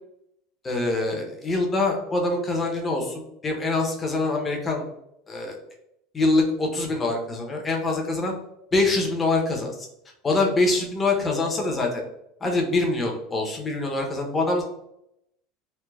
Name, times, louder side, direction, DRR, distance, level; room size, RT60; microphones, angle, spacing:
voice 1, 0.6-4.8 5.3-5.6 6.1-8.3 8.7-9.9 10.2-12.0 12.4-14.6, left 2 dB, 20° left, 1 dB, 0.6 m, -24 dB
3.2 x 2.0 x 2.2 m, 0.79 s
supercardioid pair, 125°, 0 cm